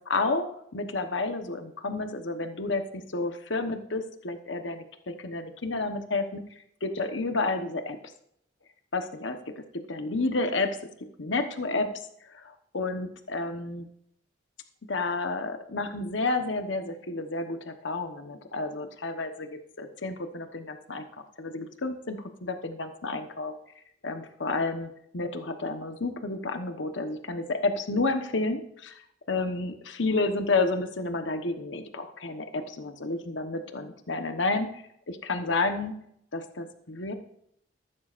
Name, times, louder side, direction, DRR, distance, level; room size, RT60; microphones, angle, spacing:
voice 1, 0.0-2.8 3.1-6.4 6.8-8.0 8.9-9.4 9.9-10.8 11.2-12.0 12.3-13.9 14.9-21.1 21.4-23.5 24.0-35.9 36.3-37.1, left 3 dB, 80° left, 7 dB, 1.1 m, -30 dB
14.0 x 12.5 x 2.5 m, 0.71 s
head